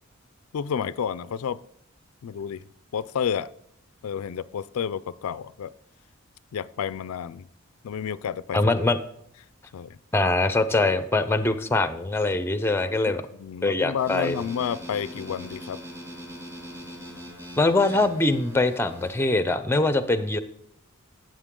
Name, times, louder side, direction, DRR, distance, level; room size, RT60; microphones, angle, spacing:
voice 1, 0.5-1.6 2.2-2.7 2.9-3.5 4.0-5.7 6.5-7.5 7.8-8.6 9.7-10.0 13.1-15.8, left 8 dB, 85° left, 18 dB, 0.4 m, -30 dB
voice 2, 8.5-9.0 10.1-13.2 13.6-14.4 17.6-20.4, left 2 dB, 10° left, 11 dB, 0.5 m, -23 dB
sound 1, 14.0-19.3, equal, 15° right, 1.9 m, -41 dB
13.0 x 7.7 x 3.7 m, 0.70 s
head